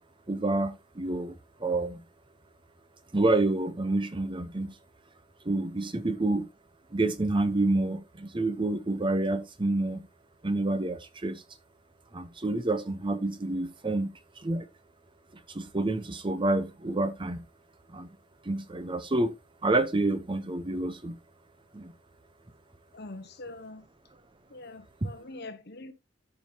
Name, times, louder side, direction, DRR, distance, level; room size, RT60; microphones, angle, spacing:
voice 1, 0.3-2.0 3.1-4.7 5.4-6.5 6.9-10.0 10.4-11.4 12.1-14.1 14.4-14.7 15.5-17.4 17.9-18.1 18.4-19.3 19.6-21.2 21.7-21.9 25.0-25.1, right 2 dB, 25° right, 0.8 m, -28 dB
voice 2, 22.9-23.9 24.5-25.9, left 2 dB, 60° left, 1.1 m, -43 dB
13.5 x 5.2 x 2.8 m
head